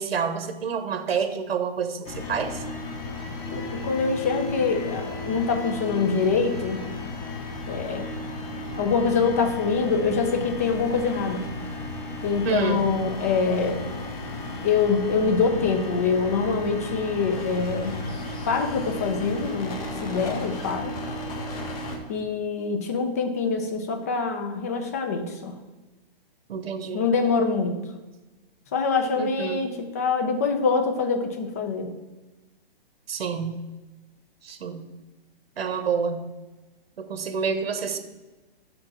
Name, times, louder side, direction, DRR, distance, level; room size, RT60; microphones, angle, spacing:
voice 1, 0.0-2.6 12.4-12.8 26.5-27.0 29.1-29.7 33.1-33.6 34.4-34.8 35.6-36.2 37.0-38.0, right 6 dB, 90° right, 8 dB, 1.1 m, -28 dB
sound 1, 2.0-22.0, left 2 dB, 40° left, 1.3 m, -34 dB
voice 2, 3.5-6.8 7.7-8.1 8.8-11.5 12.2-13.8 14.6-18.0 18.5-20.9 22.1-25.5 26.9-27.8 28.7-31.9, left 5 dB, 15° left, 6 dB, 0.3 m, -25 dB
5.8 x 5.1 x 6.1 m, 1.1 s
hypercardioid pair, 155°, 30 cm